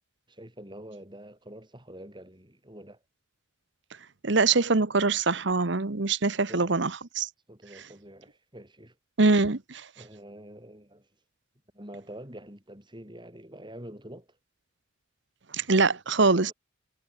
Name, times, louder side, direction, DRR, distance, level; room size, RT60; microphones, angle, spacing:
voice 1, 0.3-3.0 6.5-6.8 7.5-9.0 10.0-11.1 11.7-14.3 16.1-16.5, right 1 dB, 25° right, 8.0 m, -46 dB
voice 2, 4.2-7.3 9.2-9.9 15.5-16.5, right 3 dB, 60° right, 1.1 m, -23 dB
head